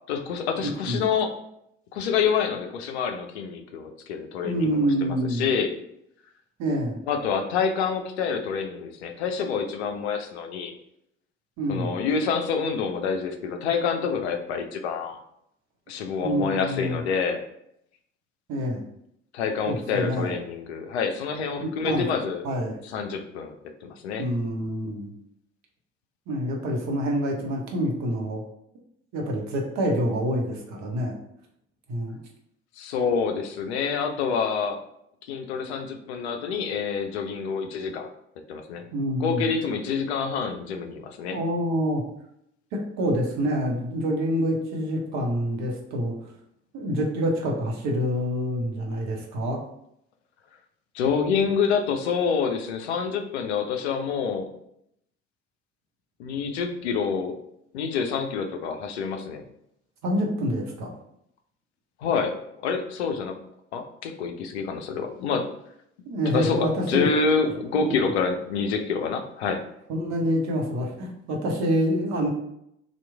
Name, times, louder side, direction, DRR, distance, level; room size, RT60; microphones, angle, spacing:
voice 1, 0.1-1.3 1.9-5.7 7.1-10.7 11.7-15.2 15.9-17.4 19.3-22.4 22.8-23.5 23.8-24.2 32.8-34.8 35.3-38.1 38.5-38.9 39.2-41.4 50.9-54.5 56.2-57.4 57.7-59.4 62.0-62.4 62.6-63.4 63.7-65.5 66.3-69.6, left 6 dB, 70° left, 6 dB, 0.5 m, -27 dB
voice 2, 0.6-1.0 4.4-5.5 6.6-7.0 11.6-11.9 16.2-17.0 18.5-18.8 19.7-20.3 21.6-22.1 22.4-22.7 24.2-25.1 26.3-28.4 29.1-31.1 31.9-32.2 38.9-39.5 41.3-42.0 42.7-46.1 46.7-49.6 60.0-61.0 66.1-67.1 67.7-67.9 69.9-72.3, equal, 55° right, 0 dB, 1.0 m, -26 dB
2.9 x 2.4 x 3.4 m, 0.74 s
figure-of-eight pair, 50°, 34 cm